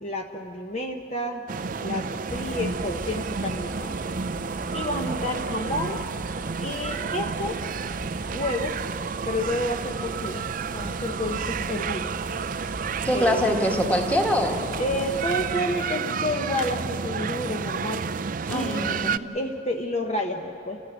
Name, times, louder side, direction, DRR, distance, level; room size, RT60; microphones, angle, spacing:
voice 1, 0.0-1.4 1.8-4.0 4.7-6.0 6.6-7.6 8.3-8.8 9.3-10.4 10.7-12.1 13.1-13.4 14.8-18.1 18.5-19.0 19.3-20.8, left 1 dB, 35° left, 2 dB, 0.9 m, -30 dB
sound 1, 1.5-19.2, right 5 dB, 45° right, 0.4 m, -31 dB
sound 2, 2.3-15.6, right 1 dB, 10° right, 1.5 m, -41 dB
voice 2, 13.0-14.6 18.5-19.2, equal, 10° left, 2 dB, 1.6 m, -24 dB
29.5 x 14.5 x 8.0 m, 2.9 s
head